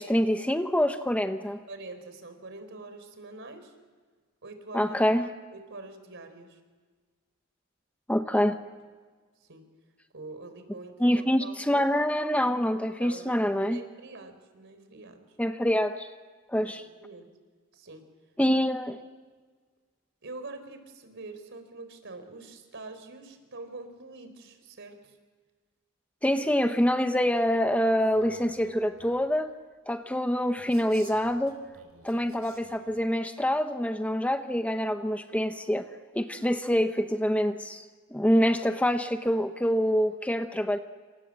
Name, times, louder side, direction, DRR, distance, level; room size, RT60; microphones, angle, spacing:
voice 1, 0.0-1.6 4.7-5.3 8.1-8.6 11.0-13.8 15.4-16.1 16.5-16.8 18.4-19.0 26.2-29.5 29.9-31.6 32.0-37.8 38.1-40.8, equal, 5° left, 7 dB, 0.9 m, -26 dB
voice 2, 1.7-3.7 4.4-5.0 5.5-6.6 9.4-9.6 10.1-11.9 13.0-15.2 16.6-16.7 17.0-17.3 17.7-18.0 18.5-18.6 20.2-25.2 32.1-32.2, right 3 dB, 60° right, 8 dB, 4.2 m, -45 dB
Male speech man speaking, 28.0-29.3 30.6-33.0, right 4 dB, 90° right, 5.1 m, -55 dB
28.0 x 26.5 x 7.6 m, 1.5 s
head